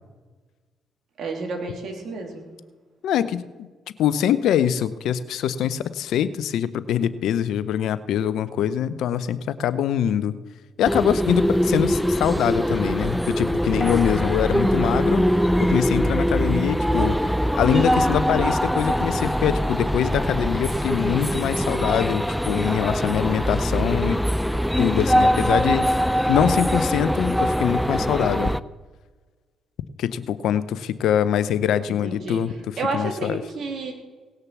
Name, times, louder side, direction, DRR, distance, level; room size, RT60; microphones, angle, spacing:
voice 1, 1.2-2.5 31.9-32.4 32.8-33.9, right 3 dB, 65° right, 1 dB, 3.1 m, -30 dB
voice 2, 3.0-3.7 4.0-10.4 10.8-15.2 15.6-24.2 24.8-25.9 26.3-28.5 30.0-33.4, left 9 dB, 75° left, 15 dB, 0.6 m, -24 dB
sound 1, 10.8-28.6, equal, ahead, 0.5 m, -22 dB
18.0 x 6.6 x 6.0 m, 1.3 s
supercardioid pair, 60°, 0 cm